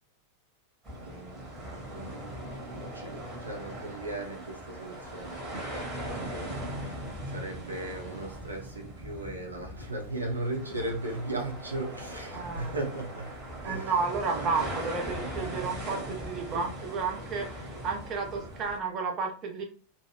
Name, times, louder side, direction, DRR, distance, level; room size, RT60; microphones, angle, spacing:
sound 1, 0.8-18.8, right 1 dB, 15° right, 1.3 m, -40 dB
voice 1, 1.0-13.3 13.6-13.9 14.2-14.5, right 2 dB, 80° right, 0.6 m, -38 dB
voice 2, 12.3-12.7 13.6-19.6, right 5 dB, 30° right, 0.7 m, -32 dB
2.5 x 2.3 x 3.1 m
figure-of-eight pair, 90°, 0 cm